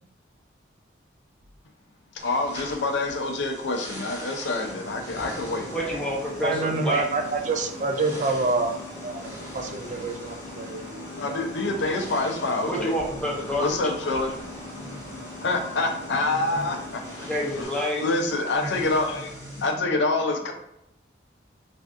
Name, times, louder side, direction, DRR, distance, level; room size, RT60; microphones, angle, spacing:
voice 1, 2.2-6.1 11.1-12.9 13.6-14.4 15.4-17.0 17.6-17.7 18.0-20.5, left 2 dB, 70° left, 4 dB, 0.5 m, -26 dB
sound 1, 2.2-19.7, equal, 20° right, 1.4 m, -43 dB
sound 2, 4.6-17.6, left 1 dB, 25° left, 1.0 m, -40 dB
voice 2, 5.7-7.1 12.6-13.8 17.2-18.2, left 1 dB, 5° left, -4 dB, 0.6 m, -28 dB
voice 3, 6.4-8.8 9.0-11.4, right 3 dB, 40° right, 5 dB, 0.3 m, -27 dB
3.3 x 2.5 x 2.4 m, 0.84 s
head